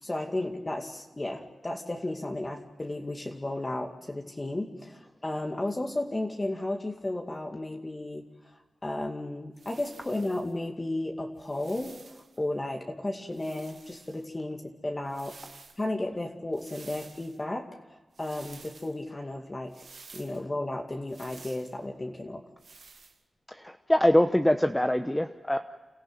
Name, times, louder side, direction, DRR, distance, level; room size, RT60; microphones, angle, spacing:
voice 1, 0.0-8.2 8.8-15.4 15.8-17.7 18.2-19.7 20.1-22.4, left 1 dB, 30° left, 2 dB, 2.3 m, -33 dB
sound 1, 9.6-10.5 11.4-12.4 13.3-14.2 15.0-15.8 16.5-17.4 18.1-18.9 19.7-20.4 21.1-21.8 22.6-23.2, right 4 dB, 75° right, 2.0 m, -51 dB
voice 2, 23.5-25.6, left 1 dB, 10° left, 6 dB, 1.0 m, -24 dB
29.0 x 14.5 x 9.6 m, 1.2 s
cardioid pair, 55°, 0 cm